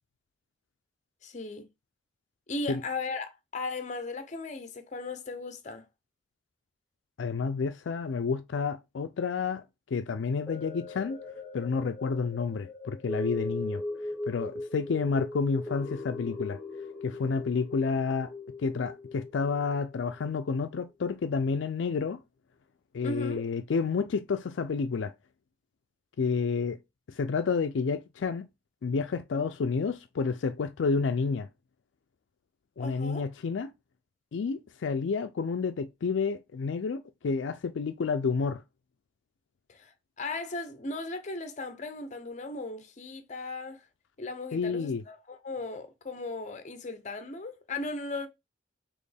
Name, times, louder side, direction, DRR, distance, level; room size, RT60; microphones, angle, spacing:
voice 1, 1.2-1.7 2.5-5.9 23.0-23.4 32.8-33.2 39.7-43.9 44.2-48.3, left 3 dB, 40° left, 0.6 m, -37 dB
voice 2, 7.2-9.6 9.9-11.2 11.5-13.8 14.3-16.6 17.0-18.3 18.6-22.2 22.9-25.1 26.2-26.8 27.1-28.5 28.8-31.5 32.8-33.7 34.3-38.6 44.5-45.0, left 5 dB, 80° left, 0.4 m, -30 dB
sound 1, 10.5-20.8 21.3-21.4, left 2 dB, 5° left, 1.4 m, -39 dB
4.2 x 3.1 x 3.3 m
head